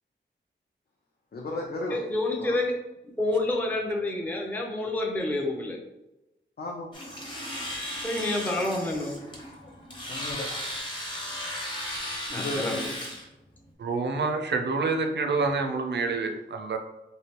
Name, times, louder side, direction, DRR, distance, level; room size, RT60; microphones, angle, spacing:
voice 1, 1.3-2.0 2.4-2.6 6.6-6.9 8.1-8.2 9.6-9.7 10.1-10.7 12.3-12.9, left 2 dB, 55° left, -1 dB, 0.5 m, -35 dB
voice 2, 1.9-2.7 3.2-5.8 8.0-9.1 12.3-12.8, left 2 dB, 10° left, -1 dB, 0.5 m, -28 dB
Domestic sounds home sounds, 6.9-13.2, equal, 25° left, 1.0 m, -35 dB
voice 3, 13.8-16.8, right 4 dB, 60° right, 5 dB, 0.5 m, -27 dB
3.2 x 2.7 x 2.9 m, 0.95 s
wide cardioid pair, 90°, 20 cm